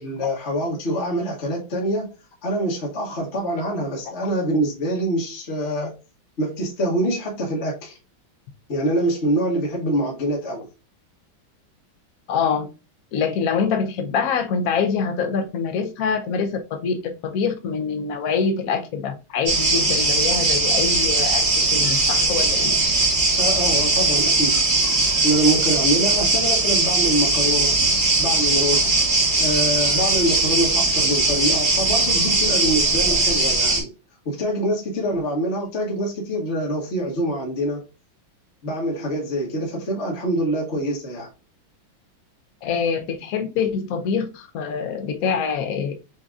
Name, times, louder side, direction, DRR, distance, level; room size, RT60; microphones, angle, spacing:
voice 1, 0.0-2.1 2.4-5.9 6.4-7.9 8.7-10.7 23.4-24.6 25.2-27.7 28.2-29.0 29.4-33.9 34.2-37.8 38.6-41.3, right 1 dB, 40° left, -3 dB, 1.3 m, -25 dB
voice 2, 12.3-12.7 13.1-21.4 21.7-22.7 42.6-45.9, left 6 dB, 60° left, 5 dB, 1.0 m, -25 dB
sound 1, 19.5-33.8, right 3 dB, 25° right, 1.4 m, -20 dB
7.1 x 2.8 x 2.4 m, 0.30 s
omnidirectional pair, 2.2 m